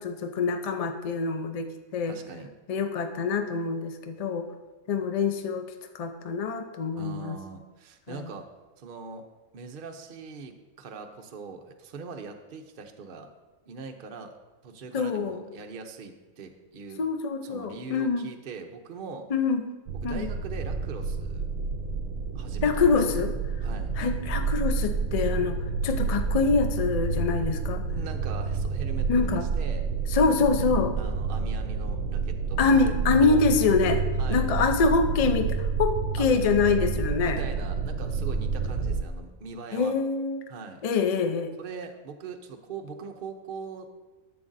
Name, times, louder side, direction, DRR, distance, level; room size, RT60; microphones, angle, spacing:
voice 1, 0.0-2.1 2.7-4.5 4.9-5.7 5.9-7.4 8.1-8.3 14.9-15.4 17.0-18.3 19.3-19.6 20.0-20.3 22.6-23.3 24.0-25.6 25.8-27.8 29.1-29.5 30.1-31.0 32.6-34.0 34.3-37.4 39.7-40.4 40.8-41.5, left 4 dB, 75° left, 7 dB, 0.3 m, -25 dB
voice 2, 2.1-2.5 7.0-8.5 8.8-9.3 9.5-13.3 13.7-14.4 14.6-17.0 17.4-19.3 20.0-21.5 22.3-23.2 23.6-23.9 27.9-29.8 31.0-33.4 34.2-34.5 36.1-36.3 37.2-39.9 40.5-40.8 41.6-43.9, right 5 dB, 50° right, 4 dB, 0.6 m, -41 dB
sound 1, 19.9-39.0, right 4 dB, 70° right, 1.0 m, -29 dB
11.0 x 7.8 x 2.6 m, 1.2 s
omnidirectional pair, 1.5 m